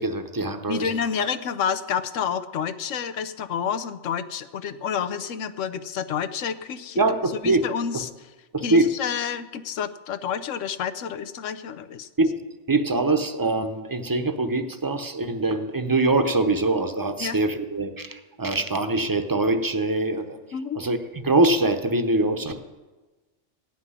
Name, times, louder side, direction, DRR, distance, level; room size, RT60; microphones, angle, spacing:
voice 1, 0.0-0.9 1.2-1.3 7.0-7.7 8.5-8.9 12.2-12.4 12.7-20.4 20.7-22.6, right 2 dB, 20° right, 8 dB, 0.7 m, -23 dB
voice 2, 0.7-7.0 7.4-8.1 8.6-12.1 17.2-17.4 20.5-20.8, left 7 dB, 90° left, 10 dB, 1.1 m, -29 dB
16.0 x 6.0 x 9.8 m, 1.2 s
omnidirectional pair, 1.3 m